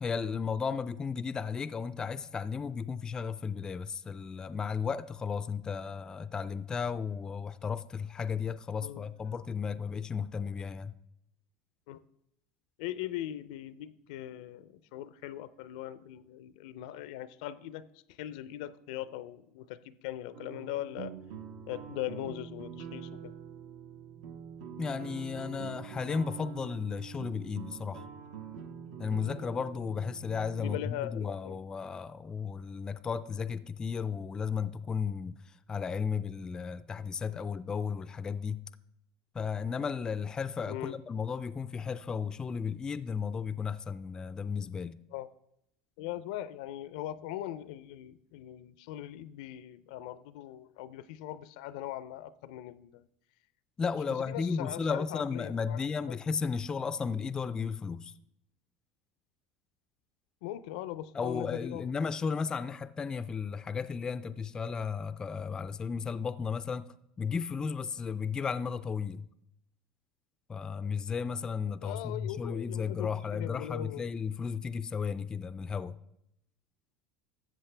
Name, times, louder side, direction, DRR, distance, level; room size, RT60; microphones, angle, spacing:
voice 1, 0.0-10.9 24.8-28.0 29.0-35.4 35.7-38.6 39.3-45.0 53.8-58.1 61.1-66.9 67.2-69.2 70.5-76.0, left 6 dB, 20° left, 0.3 m, -34 dB
voice 2, 12.8-17.9 18.2-21.1 21.7-23.3 30.6-31.6 40.7-41.0 45.1-45.3 46.0-53.1 54.1-55.8 60.4-61.8 71.8-74.0, left 13 dB, 80° left, 0.5 m, -40 dB
sound 1, 20.3-30.8, right 8 dB, 80° right, 1.2 m, -45 dB
13.5 x 7.7 x 3.3 m
supercardioid pair, 130°, 4 cm